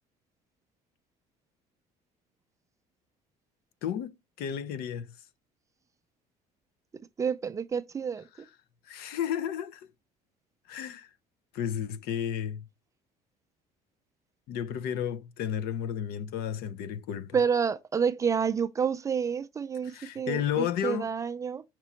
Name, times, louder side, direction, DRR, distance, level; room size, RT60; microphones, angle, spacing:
voice 1, 3.8-5.2 8.3-8.5 8.9-9.9 10.7-11.1 11.5-12.6 14.5-17.4 19.8-21.1, left 9 dB, 75° left, 0.6 m, -32 dB
voice 2, 7.2-8.3 17.3-21.6, right 6 dB, 20° right, 0.4 m, -29 dB
6.0 x 2.9 x 5.6 m
cardioid pair, 160°, 16 cm